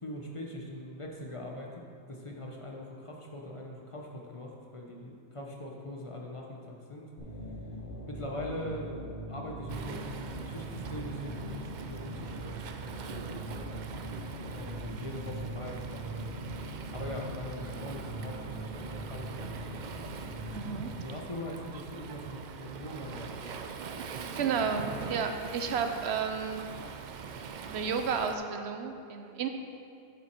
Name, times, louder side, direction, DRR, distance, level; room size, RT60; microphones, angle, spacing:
voice 1, 0.0-1.7 2.1-7.1 8.1-9.0 9.3-13.5 14.5-16.2 16.9-18.7 19.0-20.0 21.0-23.3, left 1 dB, 30° left, -1 dB, 0.8 m, -42 dB
sound 1, 7.2-20.7, right 1 dB, 55° left, 1.6 m, -41 dB
Waves surf, 9.7-28.4, right 6 dB, 55° right, 0.5 m, -43 dB
voice 2, 20.5-20.9 24.4-26.7 27.7-29.5, right 6 dB, 80° right, 6 dB, 0.9 m, -32 dB
7.3 x 7.2 x 4.4 m, 2.4 s
omnidirectional pair, 1.1 m